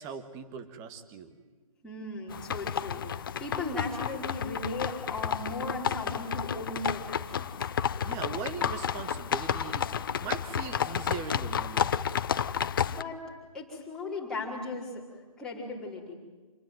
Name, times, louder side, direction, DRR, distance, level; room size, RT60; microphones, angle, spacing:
voice 1, 0.0-1.4 8.0-9.9 10.2-11.9, right 6 dB, 15° right, 9 dB, 1.7 m, -40 dB
voice 2, 1.8-7.6 12.9-13.2 13.5-16.1, left 2 dB, 5° left, -5 dB, 5.0 m, -37 dB
sound 1, 2.3-13.0, left 8 dB, 35° left, 0.8 m, -31 dB
28.0 x 20.0 x 9.3 m, 1.4 s
figure-of-eight pair, 150°, 18 cm